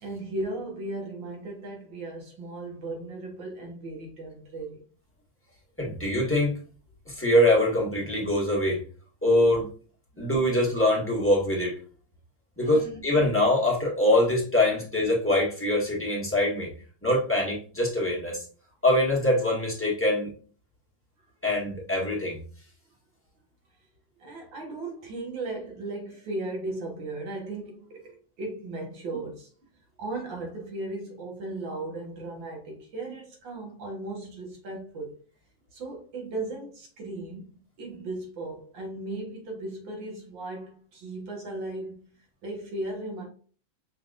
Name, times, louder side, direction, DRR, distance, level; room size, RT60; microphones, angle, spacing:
voice 1, 0.0-4.8 10.1-10.3 12.6-13.0 14.7-14.8 24.2-29.5 30.0-35.2 35.7-42.0 42.4-43.2, right 2 dB, 65° right, 2.1 m, -36 dB
voice 2, 5.8-6.6 7.1-8.8 9.2-9.7 10.2-11.8 12.6-16.7 17.0-18.4 18.8-20.3 21.4-22.4, left 1 dB, 5° left, 1.6 m, -23 dB
5.6 x 3.5 x 2.5 m
omnidirectional pair, 2.2 m